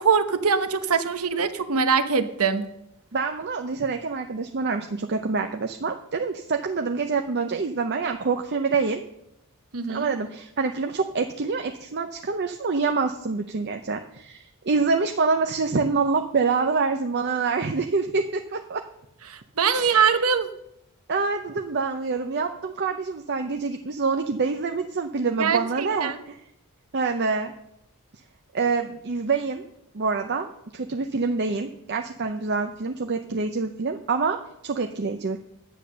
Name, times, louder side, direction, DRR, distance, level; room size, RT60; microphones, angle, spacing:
voice 1, 0.0-2.7 9.7-10.1 19.3-20.5 25.4-26.2, right 6 dB, 80° right, 10 dB, 1.0 m, -23 dB
voice 2, 3.1-9.0 9.9-18.8 19.7-20.2 21.1-26.4 26.9-27.5 28.5-29.6 29.9-34.4 34.6-35.4, right 4 dB, 50° right, 5 dB, 0.7 m, -26 dB
10.5 x 8.6 x 6.6 m, 0.82 s
head